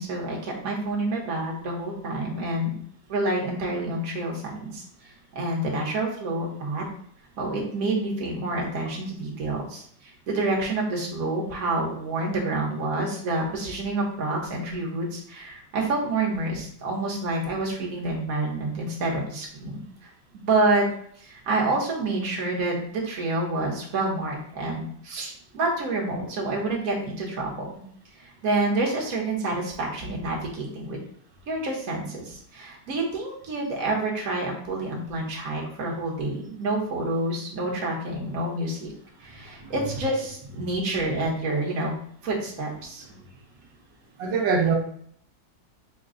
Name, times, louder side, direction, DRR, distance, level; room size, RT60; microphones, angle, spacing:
voice 1, 0.0-2.7 3.1-6.9 7.4-19.8 20.0-20.9 21.2-27.7 28.2-31.0 31.5-38.9 39.2-42.0 42.2-43.0, right 2 dB, 55° right, -3 dB, 1.4 m, -28 dB
voice 2, 44.2-44.7, right 5 dB, 90° right, 0 dB, 1.4 m, -23 dB
5.2 x 2.3 x 3.7 m, 0.62 s
omnidirectional pair, 1.9 m